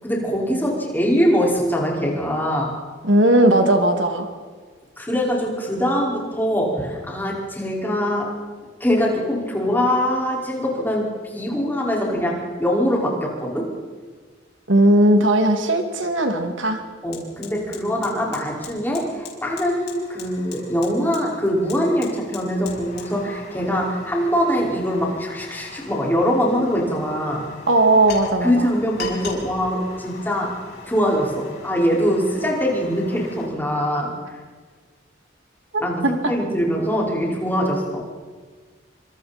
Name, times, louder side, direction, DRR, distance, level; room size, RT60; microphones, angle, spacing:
voice 1, 0.0-2.7 5.0-8.3 8.8-13.7 17.0-27.4 28.4-30.5 30.9-34.4 35.8-38.0, equal, 10° left, -3 dB, 5.4 m, -23 dB
voice 2, 3.0-4.3 14.7-16.8 27.7-28.7 35.7-36.3, right 1 dB, 85° right, 4 dB, 2.7 m, -17 dB
Fire, 16.0-16.1 16.5-33.5, left 5 dB, 55° left, 5.4 m, -40 dB
28.0 x 25.5 x 4.5 m, 1.5 s
head